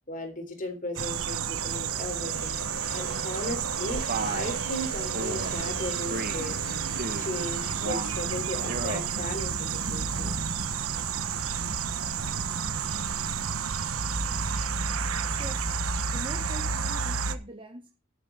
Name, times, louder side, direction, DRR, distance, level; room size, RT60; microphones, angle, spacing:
voice 1, 0.0-10.4 12.3-12.4, left 1 dB, 40° left, 3.8 m, -37 dB
sound 1, 1.0-17.4, right 6 dB, 75° right, 1.2 m, -30 dB
Mechanisms / Drill, 1.7-10.3, left 3 dB, 65° left, 6.5 m, -46 dB
Male speech man speaking, 4.1-4.6 5.1-5.5 6.1-6.5 6.9-7.4 7.8-8.2 8.6-9.1, right 3 dB, 45° right, 1.7 m, -34 dB
voice 2, 15.4-15.7 16.1-17.9, right 1 dB, 25° right, 1.2 m, -42 dB
13.0 x 11.5 x 3.9 m
head